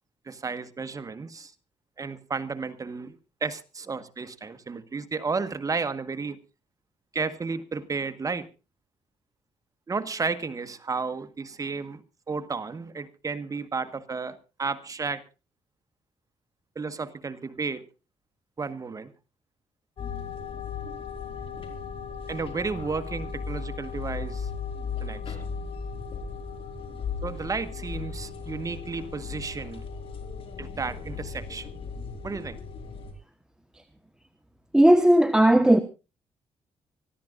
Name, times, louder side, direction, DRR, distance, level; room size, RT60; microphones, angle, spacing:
voice 1, 0.3-1.5 2.0-6.4 7.1-8.5 9.9-15.2 16.7-17.8 18.6-19.1 22.3-24.5 25.0-25.4 27.2-29.8 30.6-31.7 32.2-32.6, right 4 dB, 30° right, 1.5 m, -33 dB
sound 1, 20.0-33.1, left 5 dB, 50° left, 5.2 m, -36 dB
voice 2, 34.7-35.8, right 1 dB, 5° right, 1.2 m, -16 dB
25.5 x 14.5 x 2.5 m
cardioid pair, 115°, 11 cm